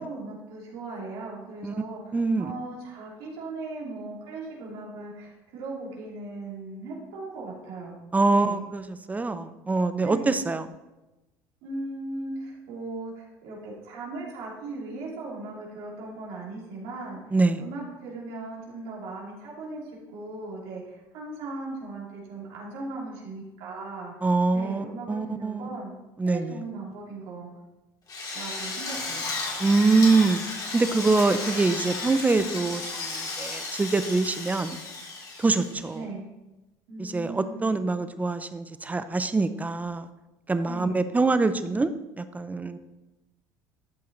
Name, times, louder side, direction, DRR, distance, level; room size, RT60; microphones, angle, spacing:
voice 1, 0.0-2.1 2.4-8.0 8.3-8.6 10.0-10.4 11.6-24.3 24.5-25.9 26.3-27.5 28.3-29.2 35.9-36.3 36.9-37.7 40.7-41.0, right 2 dB, 75° right, -4 dB, 2.8 m, -38 dB
voice 2, 2.1-2.5 8.1-10.7 17.3-17.6 24.2-25.7 26.2-26.6 29.6-30.4 30.7-34.8 35.4-36.1 37.0-40.1 40.5-42.8, right 3 dB, 15° right, 12 dB, 0.6 m, -24 dB
Drill, 28.1-35.9, left 3 dB, 40° left, 2.7 m, -34 dB
12.0 x 5.6 x 3.9 m, 1.0 s
supercardioid pair, 95°, 10 cm